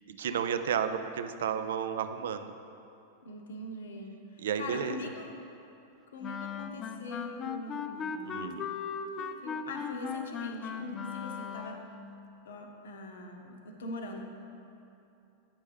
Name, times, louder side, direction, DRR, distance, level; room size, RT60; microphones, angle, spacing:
voice 1, 0.2-2.5 4.4-5.0 8.2-8.7, right 8 dB, 60° right, 10 dB, 0.3 m, -32 dB
voice 2, 3.2-5.3 6.1-8.4 9.2-11.8 12.4-14.3, left 2 dB, 65° left, 3 dB, 0.7 m, -42 dB
Wind instrument woodwind instrument, 6.2-12.0, left 7 dB, 25° left, 0.3 m, -38 dB
8.8 x 5.3 x 3.4 m, 2.7 s
figure-of-eight pair, 90°, 0 cm